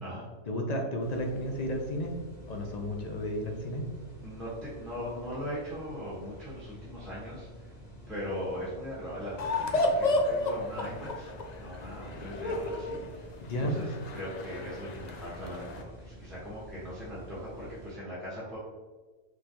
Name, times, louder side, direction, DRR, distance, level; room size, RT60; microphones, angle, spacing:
voice 1, 0.5-2.1 2.5-3.8 13.5-13.8, equal, 40° left, 2 dB, 0.6 m, -32 dB
sound 1, 1.0-17.9, equal, 25° left, 1.4 m, -49 dB
voice 2, 4.2-7.7 8.1-11.3 11.6-13.3 13.6-18.6, equal, ahead, -7 dB, 1.3 m, -39 dB
sound 2, 9.4-15.8, left 2 dB, 90° left, 0.3 m, -32 dB
5.4 x 3.2 x 3.0 m, 1.3 s
omnidirectional pair, 1.5 m